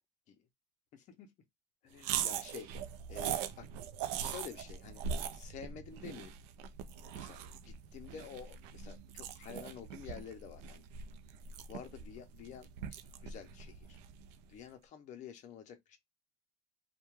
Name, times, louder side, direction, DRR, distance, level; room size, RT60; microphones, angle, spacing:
voice 1, 0.9-1.3 1.8-2.7 3.1-3.7 4.2-5.0 5.3-6.4 7.1-10.9 11.7-14.0 14.5-16.0, left 8 dB, 35° left, 0.5 m, -49 dB
sound 1, 2.0-14.5, right 8 dB, 80° right, 0.4 m, -41 dB
2.2 x 2.2 x 3.0 m
cardioid pair, 155°, 21 cm